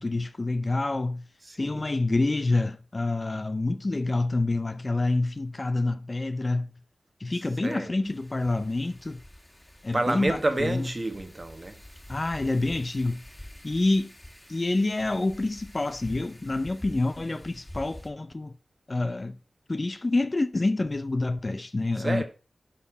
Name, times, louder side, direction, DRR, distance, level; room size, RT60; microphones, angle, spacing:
voice 1, 0.0-1.2 1.6-6.7 7.2-9.2 9.8-10.9 12.1-13.2 13.6-14.1 14.5-18.5 18.9-19.4 19.7-22.2, left 2 dB, 35° left, 0.5 m, -27 dB
voice 2, 1.4-1.9 7.6-7.9 9.9-11.8 22.0-22.2, right 2 dB, 35° right, 1.5 m, -29 dB
Wind, 8.0-18.1, left 1 dB, 15° left, 1.8 m, -47 dB
11.0 x 4.3 x 4.6 m
wide cardioid pair, 80°, 0 cm